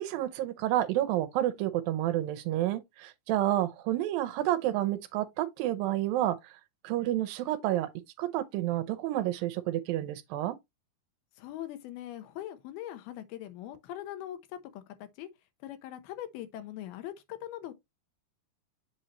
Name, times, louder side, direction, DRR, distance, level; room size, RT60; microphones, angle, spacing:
voice 1, 0.0-6.4 6.8-7.9 8.2-10.6, right 13 dB, 80° right, 2.3 m, -29 dB
voice 2, 11.4-15.3 15.6-17.7, left 12 dB, 80° left, 2.9 m, -41 dB
7.9 x 4.4 x 2.9 m
omnidirectional pair, 4.4 m